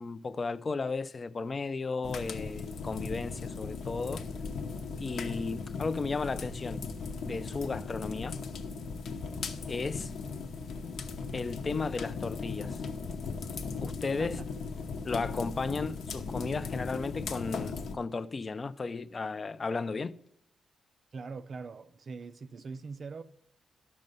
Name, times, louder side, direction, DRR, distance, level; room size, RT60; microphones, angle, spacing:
voice 1, 0.0-4.3 5.0-6.8 7.2-8.4 9.7-10.1 11.3-12.8 13.8-14.4 15.0-20.2, left 4 dB, 30° left, 0.4 m, -34 dB
sound 1, 2.0-17.9, left 4 dB, 70° left, 0.9 m, -38 dB
voice 2, 14.2-14.6 21.1-23.2, right 4 dB, 40° right, 0.4 m, -42 dB
12.0 x 6.5 x 5.4 m
wide cardioid pair, 160°, 0 cm